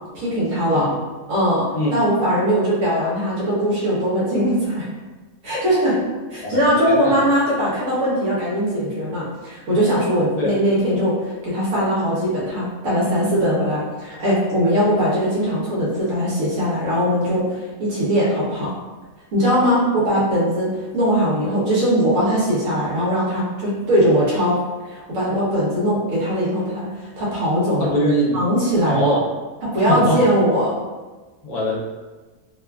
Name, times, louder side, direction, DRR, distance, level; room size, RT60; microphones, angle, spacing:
voice 1, 0.1-0.9 1.3-1.7 1.9-4.9 5.4-6.0 6.3-18.7 19.3-24.5 24.8-27.9 28.3-29.2 29.7-30.7, equal, 65° right, -6 dB, 1.2 m, -20 dB
voice 2, 6.9-7.2 10.4-10.5 27.8-28.4 28.9-29.2 29.9-30.2 31.4-31.7, equal, 80° left, -5 dB, 1.3 m, -22 dB
3.1 x 2.3 x 2.3 m, 1.3 s
omnidirectional pair, 1.5 m